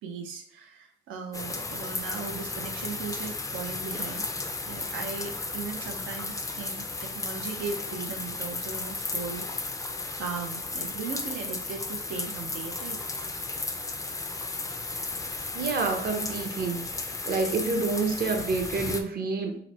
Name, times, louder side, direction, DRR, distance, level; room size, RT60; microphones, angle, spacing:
voice 1, 0.0-4.3 4.6-9.9 10.2-13.0 17.7-17.8, right 5 dB, 90° right, 4 dB, 0.6 m, -38 dB
sound 1, 1.3-19.0, left 3 dB, 15° left, 0.4 m, -34 dB
voice 2, 15.5-16.9 17.3-19.6, right 4 dB, 50° right, 4 dB, 0.7 m, -28 dB
3.0 x 2.1 x 4.1 m, 0.65 s
cardioid pair, 90°, 20 cm